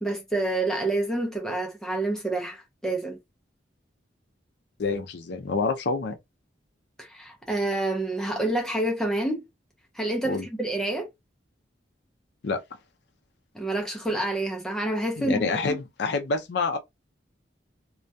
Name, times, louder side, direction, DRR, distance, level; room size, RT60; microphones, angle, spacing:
voice 1, 0.0-3.2 7.0-9.5 10.0-11.1 13.5-15.8, right 2 dB, 5° left, 0.4 m, -28 dB
voice 2, 4.8-6.1 10.2-10.5 12.4-12.6 15.2-16.8, left 4 dB, 60° left, 0.4 m, -27 dB
2.2 x 2.1 x 2.6 m
head